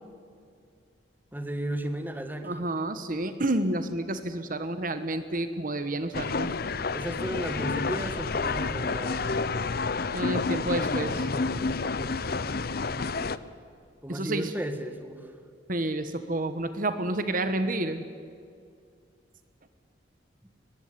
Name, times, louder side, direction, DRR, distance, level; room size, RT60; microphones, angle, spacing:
voice 1, 1.3-2.7 6.9-9.4 14.0-15.3, right 1 dB, 10° right, 7 dB, 1.6 m, -34 dB
voice 2, 2.4-6.5 10.1-11.3 14.1-14.5 15.7-18.0, right 1 dB, 45° right, 10 dB, 1.2 m, -30 dB
sound 1, 6.1-13.4, left 4 dB, 55° left, 0.7 m, -29 dB
22.5 x 19.5 x 9.8 m, 2.3 s
head